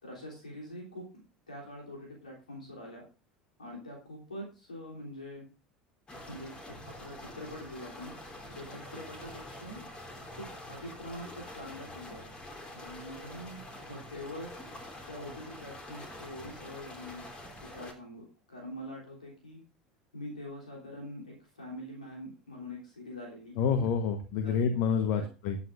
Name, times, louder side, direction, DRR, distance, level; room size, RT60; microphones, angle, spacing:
voice 1, 0.0-1.0 1.5-3.0 3.6-5.4 6.3-8.1 8.5-9.8 10.3-12.2 12.7-13.6 13.9-14.6 15.1-17.2 17.7-19.6 20.1-23.6 24.4-24.6 25.1-25.2, left 1 dB, 80° left, -2 dB, 3.4 m, -44 dB
sound 1, 6.1-17.9, left 1 dB, 25° left, 3.2 m, -46 dB
voice 2, 23.6-25.6, left 6 dB, 55° left, 9 dB, 1.2 m, -28 dB
20.5 x 8.5 x 2.6 m, 0.35 s
figure-of-eight pair, 70°, 4 cm